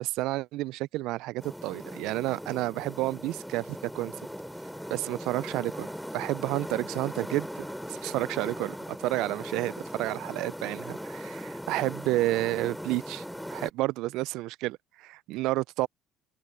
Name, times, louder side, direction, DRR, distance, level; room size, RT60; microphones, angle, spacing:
voice 1, 0.0-4.1 4.9-13.2 13.5-15.9, right 18 dB, 75° right, 0.3 m, -31 dB
sound 1, 1.4-13.7, equal, ahead, 3.0 m, -39 dB
supercardioid pair, 85°, 0 cm